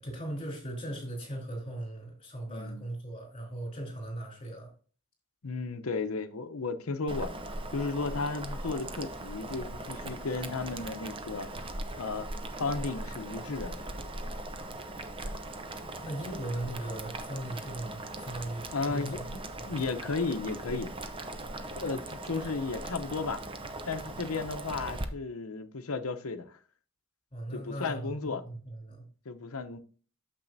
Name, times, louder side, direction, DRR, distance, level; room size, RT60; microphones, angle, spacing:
voice 1, 0.0-4.7 15.8-19.3 19.6-19.8 27.3-29.1, right 1 dB, 30° left, 3.6 m, -38 dB
voice 2, 2.5-2.9 5.4-7.3 7.7-11.5 12.0-12.3 12.6-13.8 18.7-20.9 21.8-23.4 23.9-26.6 27.5-28.4 29.3-29.8, left 4 dB, 80° left, 0.8 m, -34 dB
Boiling, 7.1-25.0, right 1 dB, 25° right, 0.6 m, -40 dB
8.9 x 7.0 x 2.7 m
head